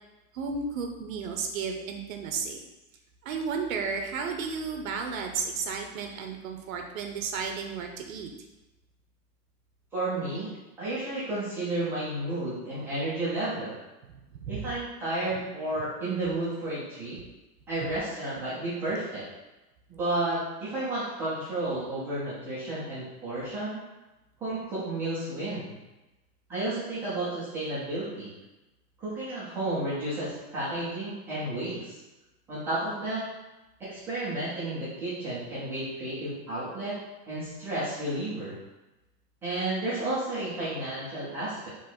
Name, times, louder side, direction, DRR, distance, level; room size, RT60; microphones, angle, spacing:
voice 1, 0.3-2.6 3.2-8.3 14.3-14.6, right 5 dB, 55° right, 4 dB, 0.7 m, -33 dB
voice 2, 9.9-13.8 14.5-17.2 17.7-19.3 19.9-23.8 24.4-25.8 26.5-28.3 29.0-32.0 32.5-33.2 33.8-37.0 37.3-38.5 39.4-41.7, right 2 dB, 5° right, -12 dB, 0.3 m, -32 dB
3.9 x 3.0 x 4.3 m, 1.1 s
hypercardioid pair, 140°, 49 cm